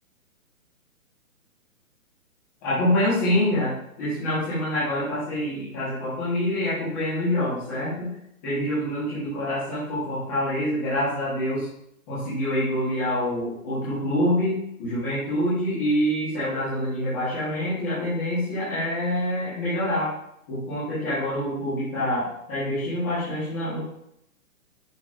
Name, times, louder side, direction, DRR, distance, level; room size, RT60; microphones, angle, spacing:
voice 1, 2.6-3.7 4.0-8.1 8.4-11.7 12.1-20.1 20.5-23.8, left 1 dB, 10° left, -13 dB, 1.3 m, -26 dB
11.0 x 5.4 x 2.5 m, 0.77 s
hypercardioid pair, 180°, 43 cm